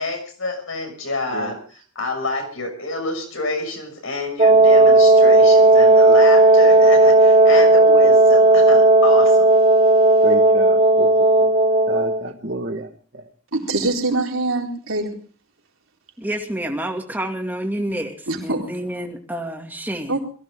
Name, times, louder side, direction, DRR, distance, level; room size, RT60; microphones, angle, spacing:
voice 1, 0.0-1.6 1.9-9.5, left 2 dB, 75° left, 5 dB, 6.3 m, -28 dB
Wind instrument woodwind instrument, 4.4-12.3, right 2 dB, 30° right, 0.9 m, -13 dB
voice 2, 10.2-11.1 11.4-11.5 11.9-12.9, right 1 dB, 50° right, 1 dB, 1.8 m, -30 dB
voice 3, 13.5-15.1 18.3-18.7 20.1-20.2, right 2 dB, 75° right, 0 dB, 4.3 m, -23 dB
voice 4, 16.2-20.2, right 1 dB, 10° right, 2 dB, 2.4 m, -28 dB
22.5 x 16.0 x 3.8 m, 0.41 s
head